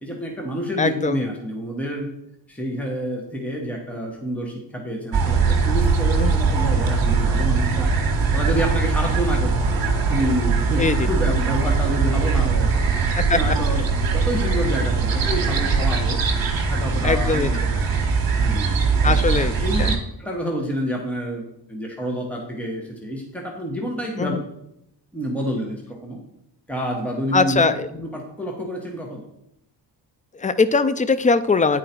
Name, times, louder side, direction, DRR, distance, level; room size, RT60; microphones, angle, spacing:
voice 1, 0.0-2.1 2.5-7.9 8.3-9.8 10.1-12.9 13.3-13.8 14.1-16.2 16.7-18.0 18.3-19.9 20.2-24.3 25.1-26.2 26.7-27.6 27.9-29.3, equal, 5° left, 0 dB, 1.4 m, -28 dB
voice 2, 0.8-1.3 6.1-6.3 10.8-11.1 13.1-13.6 17.0-17.5 19.0-19.9 24.2-24.4 27.3-27.9 30.3-31.8, left 4 dB, 20° left, 14 dB, 0.4 m, -21 dB
sound 1, 5.1-20.0, right 4 dB, 50° right, 1.6 m, -21 dB
8.5 x 4.8 x 4.5 m, 0.82 s
cardioid pair, 80°, 44 cm